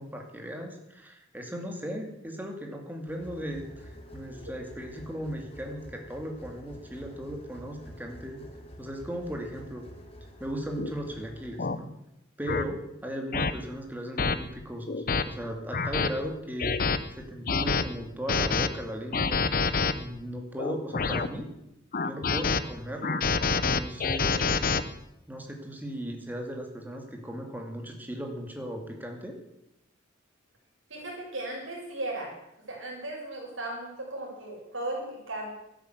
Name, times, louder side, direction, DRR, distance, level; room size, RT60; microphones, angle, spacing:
voice 1, 0.0-8.4 8.8-9.9 10.4-11.9 12.4-16.8 17.1-19.5 19.9-21.5 22.0-23.3 23.6-24.6 25.3-29.4, equal, 10° right, 2 dB, 2.4 m, -37 dB
sound 1, 3.1-11.6, equal, 30° left, 2.0 m, -48 dB
sound 2, 10.8-10.9 11.6-11.8 12.5-12.6 13.3-13.5 14.2-14.3 14.9-15.2 15.7-16.1 16.6-17.0 17.5-17.8 18.3-18.7 19.1-19.9 20.6-21.3 21.9-22.6 23.0-24.8, left 4 dB, 45° left, 0.8 m, -26 dB
voice 2, 30.9-32.3 32.7-35.5, right 2 dB, 80° right, -3 dB, 6.1 m, -36 dB
13.0 x 10.5 x 8.2 m, 0.83 s
head